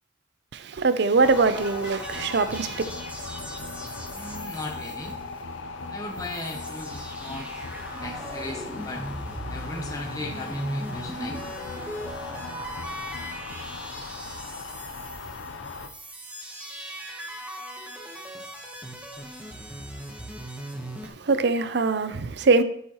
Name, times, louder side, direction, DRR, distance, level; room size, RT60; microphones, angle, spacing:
voice 1, 0.5-2.8 21.0-22.6, right 4 dB, 60° right, 0.5 m, -22 dB
sound 1, 1.2-15.9, left 3 dB, 80° left, 0.7 m, -38 dB
sound 2, 1.2-5.6 5.9-6.0 6.2-21.1, right 1 dB, 10° right, 1.2 m, -39 dB
voice 2, 4.1-5.2 5.9-7.6 7.9-9.0 9.5-11.5 20.3-20.4, left 1 dB, 20° left, 0.8 m, -37 dB
8.4 x 7.1 x 3.1 m
head